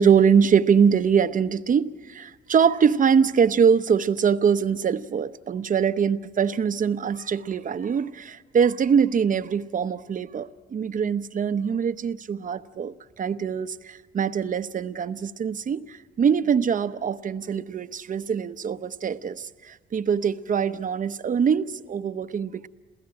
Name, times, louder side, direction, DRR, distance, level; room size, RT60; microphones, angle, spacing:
voice 1, 0.0-22.7, right 7 dB, 40° right, 0.8 m, -23 dB
28.0 x 16.0 x 8.8 m
cardioid pair, 90°, 20 cm